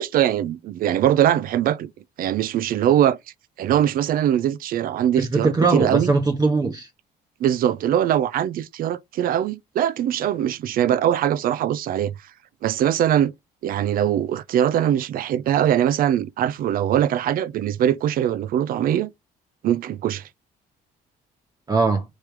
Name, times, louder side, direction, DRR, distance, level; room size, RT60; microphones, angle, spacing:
voice 1, 0.0-1.9 2.2-3.2 3.6-6.1 7.4-12.1 12.6-13.3 13.6-19.1 19.6-20.3, right 10 dB, 60° right, 0.5 m, -21 dB
voice 2, 5.2-6.9 21.7-22.0, right 3 dB, 25° right, 0.8 m, -20 dB
4.4 x 3.2 x 3.6 m
cardioid pair, 110°, 17 cm